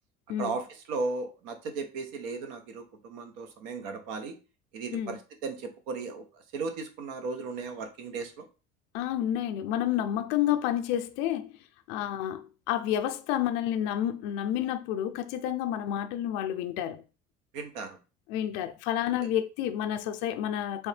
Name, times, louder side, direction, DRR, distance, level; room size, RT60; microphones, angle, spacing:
voice 1, 0.4-4.4 4.7-8.5 17.5-18.0, right 4 dB, 90° right, 0.8 m, -36 dB
voice 2, 8.9-11.6 11.9-17.0 18.3-20.9, left 11 dB, 65° left, 0.4 m, -30 dB
3.4 x 3.1 x 3.2 m
cardioid pair, 175°, 20 cm